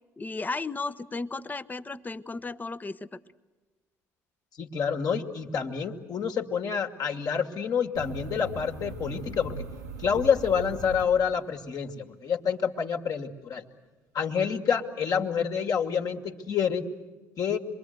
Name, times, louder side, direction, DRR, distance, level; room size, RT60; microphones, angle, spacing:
voice 1, 0.2-3.2, left 3 dB, 20° left, 12 dB, 1.0 m, -34 dB
voice 2, 4.6-9.6 10.0-13.6 14.1-16.9 17.4-17.6, left 7 dB, 50° left, 4 dB, 2.3 m, -28 dB
sound 1, 7.9-11.7, right 2 dB, 90° right, 1.7 m, -39 dB
27.0 x 22.5 x 7.9 m, 1.3 s
hypercardioid pair, 55°, 8 cm